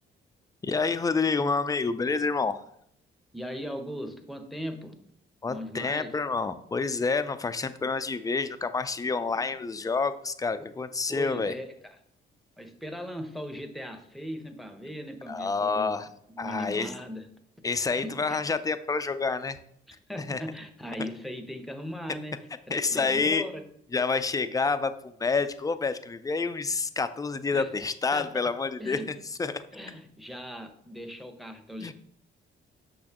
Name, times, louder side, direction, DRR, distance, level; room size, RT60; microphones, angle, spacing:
voice 1, 0.6-2.6 5.4-11.5 15.3-16.1 16.4-16.9 17.6-19.6 20.3-20.4 22.7-23.4 23.9-29.0 29.4-29.6 31.8-31.9, left 4 dB, 20° left, 11 dB, 0.4 m, -28 dB
voice 2, 3.3-5.0 5.5-6.1 9.0-9.6 11.1-12.0 12.6-17.3 17.9-18.4 19.9-22.4 22.7-23.6 27.5-27.7 28.1-28.3 28.8-29.1 29.7-31.9, equal, ahead, 6 dB, 0.9 m, -39 dB
6.4 x 6.3 x 2.9 m, 0.68 s
cardioid pair, 90°, 20 cm